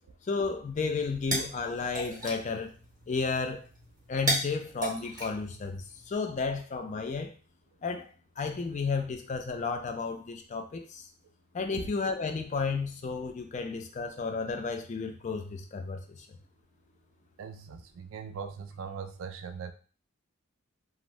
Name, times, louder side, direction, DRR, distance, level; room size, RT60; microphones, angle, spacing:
voice 1, 0.3-2.7 3.1-3.6 4.1-7.3 7.8-8.1 8.4-11.1 11.5-16.4, left 4 dB, 35° left, 5 dB, 0.3 m, -32 dB
sound 1, 0.8-6.1, right 1 dB, 15° right, 0.7 m, -36 dB
voice 2, 17.4-19.7, right 6 dB, 70° right, 7 dB, 0.4 m, -40 dB
2.5 x 2.0 x 3.1 m, 0.38 s
head